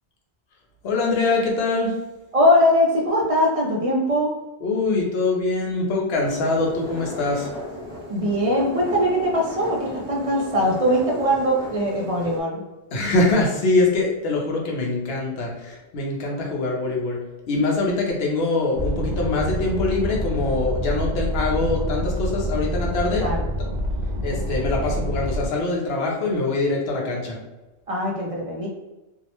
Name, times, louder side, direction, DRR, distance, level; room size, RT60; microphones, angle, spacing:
voice 1, 0.8-2.0 4.6-7.5 12.9-17.2 17.5-23.3 24.2-27.4, left 3 dB, 70° left, -1 dB, 0.9 m, -23 dB
voice 2, 2.3-4.3 8.1-12.6 23.2-23.4 27.9-28.7, equal, 50° right, -2 dB, 0.4 m, -21 dB
sound 1, 6.1-12.4, left 1 dB, 20° left, 0.7 m, -36 dB
sound 2, 18.8-25.5, equal, 85° right, 0.9 m, -27 dB
2.7 x 2.0 x 2.9 m, 1.1 s
omnidirectional pair, 1.1 m